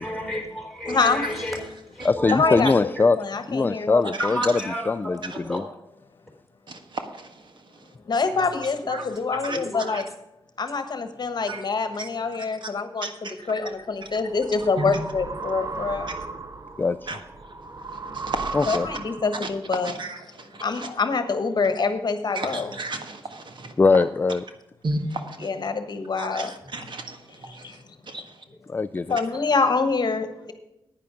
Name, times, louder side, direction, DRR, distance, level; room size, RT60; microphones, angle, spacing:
voice 1, 0.0-1.7 1.9-2.7 4.2-5.6 8.4-8.6 9.0-9.1 9.5-9.9 22.6-22.7 26.6-26.8, equal, ahead, 3.6 m, -32 dB
voice 2, 0.9-1.2 2.3-4.1 8.1-10.0 10.6-13.1 13.5-16.1 18.7-19.9 20.6-22.7 25.4-26.5 27.5-27.8 28.2-28.3 29.1-30.5, left 4 dB, 50° left, 1.2 m, -25 dB
voice 3, 2.0-3.2 3.5-4.4 4.9-5.6 16.8-17.0 18.5-18.9 23.8-24.4 28.7-29.2, left 3 dB, 20° left, 0.3 m, -21 dB
voice 4, 6.7-7.9 8.9-9.1 9.3-9.6 9.9-10.0 11.5-11.6 12.0-12.1 12.6-12.7 13.0-13.5 14.8-14.9 17.1-17.2 18.1-18.8 19.3-19.5 19.8-20.9 22.4-23.7 24.8-25.5 26.2-27.8 28.1-28.4, right 2 dB, 55° right, 1.6 m, -34 dB
sound 1, 13.7-19.5, right 3 dB, 35° right, 0.8 m, -36 dB
10.0 x 9.7 x 5.0 m
wide cardioid pair, 100°, 9 cm